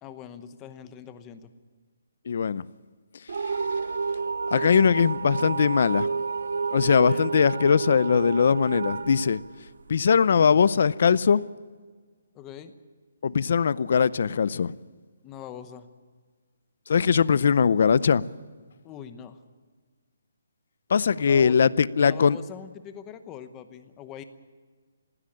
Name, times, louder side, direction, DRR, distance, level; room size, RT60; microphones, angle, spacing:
voice 1, 0.0-1.5 7.0-7.3 12.3-12.7 15.2-15.9 18.8-19.4 21.2-21.6 22.0-24.2, left 9 dB, 15° left, 0.9 m, -42 dB
voice 2, 2.3-2.6 4.5-6.1 6.7-9.4 9.9-11.4 13.2-14.7 16.9-18.2 20.9-22.4, left 6 dB, 50° left, 0.6 m, -21 dB
sound 1, 3.3-10.2, right 5 dB, 65° right, 0.6 m, -30 dB
19.5 x 16.0 x 8.6 m
hypercardioid pair, 175°, 0 cm